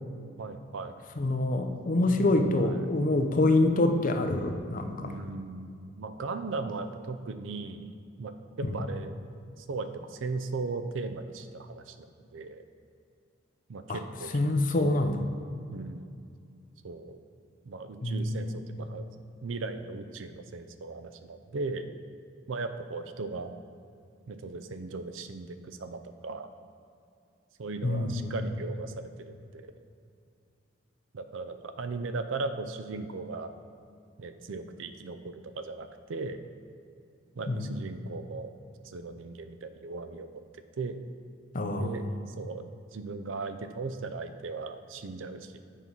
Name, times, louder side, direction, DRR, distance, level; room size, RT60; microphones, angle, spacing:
voice 1, 0.4-0.9 2.1-2.9 5.0-7.9 8.2-9.1 9.6-12.1 12.3-12.6 13.7-14.3 14.8-15.1 15.7-16.1 16.8-17.2 17.6-19.1 19.4-21.9 22.5-23.5 24.3-26.5 27.6-29.7 31.1-33.5 34.2-36.4 37.4-38.5 38.8-40.3 40.8-41.0 41.8-42.6 42.9-45.6, right 3 dB, 85° right, 9 dB, 0.5 m, -37 dB
voice 2, 1.2-5.2 8.7-8.8 13.9-14.0 14.3-15.2 18.0-18.5 27.8-28.4 37.5-37.7 41.5-42.1, left 2 dB, 45° left, 6 dB, 0.6 m, -26 dB
8.2 x 4.5 x 5.5 m, 2.4 s
head